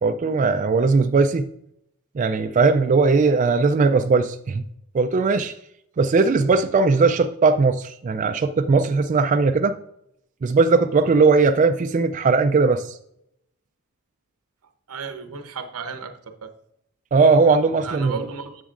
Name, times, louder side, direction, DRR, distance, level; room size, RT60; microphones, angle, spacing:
voice 1, 0.0-1.5 2.2-4.6 4.9-5.5 6.0-9.8 10.4-12.9 17.1-18.1, right 4 dB, 35° right, 0.3 m, -19 dB
voice 2, 14.9-16.5 17.8-18.6, right 5 dB, 85° right, 0.9 m, -34 dB
10.0 x 7.4 x 2.5 m
head